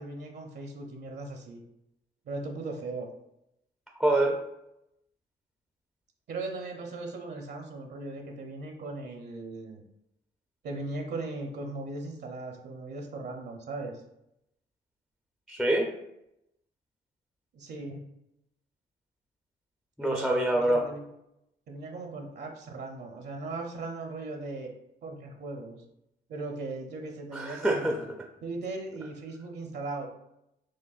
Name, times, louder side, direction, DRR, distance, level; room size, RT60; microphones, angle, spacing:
voice 1, 0.0-1.6 2.3-3.1 6.3-9.8 10.6-14.0 17.5-18.1 20.0-21.1 21.7-24.7 25.0-25.8 26.3-28.1 28.4-30.1, right 3 dB, 60° right, 2 dB, 0.7 m, -38 dB
voice 2, 4.0-4.4 15.5-15.9 20.0-20.8 27.3-28.0, right 1 dB, ahead, 1 dB, 0.4 m, -25 dB
6.1 x 2.1 x 2.4 m, 0.83 s
cardioid pair, 90°, 20 cm